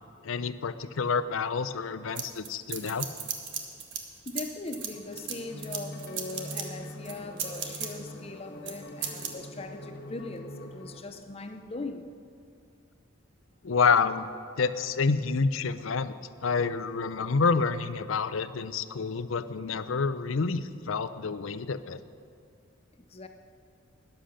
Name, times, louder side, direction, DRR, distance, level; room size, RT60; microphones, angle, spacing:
voice 1, 0.2-3.1 13.6-14.3 14.6-16.1 16.4-22.0, left 5 dB, 75° left, 13 dB, 0.6 m, -28 dB
sound 1, 2.2-4.0 4.3-6.6 7.1-7.9 8.7-8.8 9.0-9.3, right 7 dB, 60° right, 1.4 m, -35 dB
voice 2, 4.3-12.1 23.1-23.3, left 2 dB, 30° left, 7 dB, 0.6 m, -40 dB
sound 2, 4.8-11.0, left 1 dB, 45° left, 1.4 m, -44 dB
13.0 x 10.5 x 6.5 m, 2.4 s
head